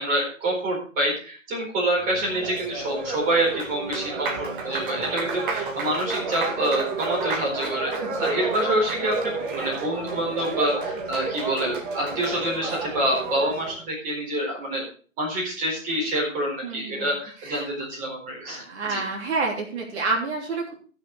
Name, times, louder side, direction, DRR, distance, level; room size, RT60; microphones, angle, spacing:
voice 1, 0.0-7.9 8.2-14.8 15.2-18.6 18.9-19.0, right 1 dB, 20° right, -2 dB, 4.3 m, -27 dB
Applause, 2.0-13.8, right 4 dB, 40° right, 2.1 m, -31 dB
voice 2, 16.6-17.1 17.4-17.6 18.4-20.7, right 3 dB, 55° right, 0 dB, 3.3 m, -29 dB
13.5 x 6.7 x 4.8 m, 0.40 s
hypercardioid pair, 145°, 39 cm